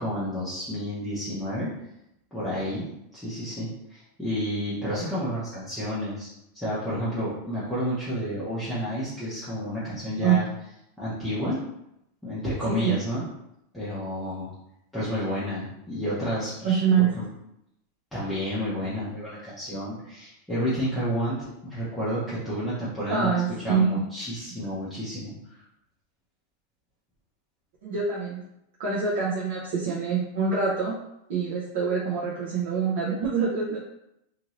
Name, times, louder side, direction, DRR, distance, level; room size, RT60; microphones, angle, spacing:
voice 1, 0.0-1.7 2.3-2.8 3.1-6.3 6.5-10.5 11.0-11.6 12.2-13.2 13.7-14.5 14.9-16.8 17.1-17.3 18.1-25.3, equal, 5° left, -11 dB, 0.7 m, -30 dB
voice 2, 12.7-13.0 16.6-17.1 23.1-24.0 27.8-28.4 28.8-31.0 31.3-33.8, right 6 dB, 65° right, -6 dB, 0.7 m, -25 dB
2.7 x 2.6 x 3.0 m, 0.82 s
supercardioid pair, 150°, 0 cm